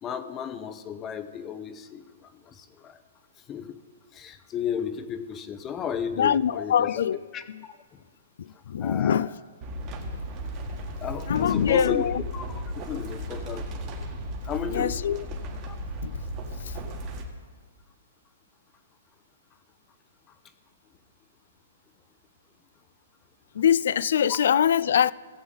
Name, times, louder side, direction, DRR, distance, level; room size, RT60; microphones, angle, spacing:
voice 1, 0.0-3.0 3.5-3.9 4.1-6.9 7.3-8.0 8.8-9.2 11.0-12.5 12.8-13.9 14.4-15.0 15.7-15.8 24.3-24.4, left 8 dB, 20° left, 0.7 m, -34 dB
voice 2, 6.2-7.2 7.5-7.6 8.4-9.3 11.3-12.2 13.1-13.2 14.7-15.2 16.0-16.2 16.6-16.8 23.5-25.1, left 8 dB, 65° left, 0.3 m, -24 dB
sound 1, 9.6-17.2, equal, 30° right, 1.7 m, -35 dB
17.5 x 7.9 x 3.9 m
hypercardioid pair, 150°, 0 cm